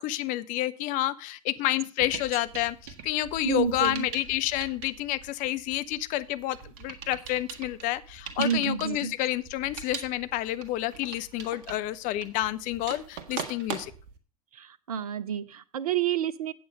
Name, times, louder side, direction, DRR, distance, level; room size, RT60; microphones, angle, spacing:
voice 1, 0.0-13.9, left 15 dB, 45° left, 14 dB, 0.7 m, -29 dB
sound 1, 2.0-14.2, right 7 dB, 50° right, 1.4 m, -42 dB
voice 2, 3.4-4.1 8.4-9.1 14.5-16.5, right 8 dB, 75° right, 15 dB, 0.6 m, -29 dB
8.5 x 8.1 x 5.3 m, 0.37 s
figure-of-eight pair, 80°, 19 cm